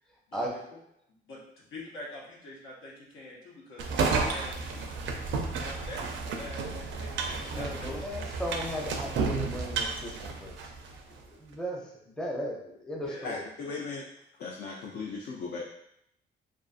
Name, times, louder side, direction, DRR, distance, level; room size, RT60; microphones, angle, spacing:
voice 1, 1.3-5.1 5.6-8.0 13.0-13.3 13.6-13.8, left 1 dB, 85° left, -4 dB, 0.9 m, -45 dB
sound 1, 3.8-11.0, right 4 dB, 70° right, 0.4 m, -32 dB
voice 2, 7.2-10.7 11.1-13.4, equal, 5° left, -2 dB, 0.5 m, -37 dB
voice 3, 13.2-14.1 14.4-15.6, left 4 dB, 60° left, -2 dB, 0.4 m, -37 dB
2.5 x 2.4 x 2.4 m, 0.76 s
cardioid pair, 90°, 20 cm